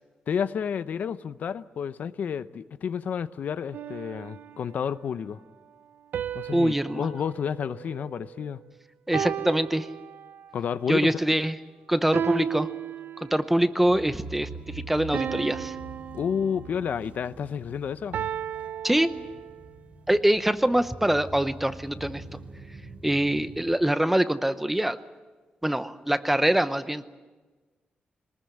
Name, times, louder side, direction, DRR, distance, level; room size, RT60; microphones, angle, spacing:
voice 1, 0.3-5.4 6.3-8.6 10.5-11.1 16.1-18.2, left 7 dB, 65° left, 0.7 m, -30 dB
sound 1, 3.7-4.9 6.1-8.6 9.1-10.6 12.1-13.6 15.1-17.0 18.1-19.8, right 9 dB, 85° right, 0.7 m, -35 dB
voice 2, 6.5-7.1 9.1-9.9 10.9-11.6 11.9-12.7 13.2-15.8 18.8-19.1 20.1-22.2 23.0-25.0 25.6-27.1, right 1 dB, 5° right, 0.7 m, -24 dB
sound 2, 13.9-23.6, right 2 dB, 50° right, 3.0 m, -44 dB
22.5 x 20.0 x 8.8 m
wide cardioid pair, 170°, 3 cm